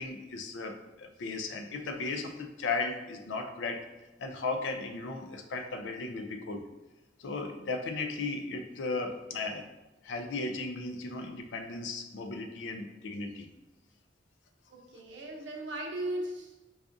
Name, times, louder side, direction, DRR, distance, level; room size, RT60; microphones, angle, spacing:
voice 1, 0.0-3.8 4.2-6.6 7.2-9.6 10.0-13.5, left 3 dB, 80° left, 6 dB, 0.4 m, -36 dB
voice 2, 14.7-16.6, right 1 dB, 90° right, 0 dB, 0.7 m, -37 dB
4.7 x 2.4 x 2.5 m, 1.1 s
head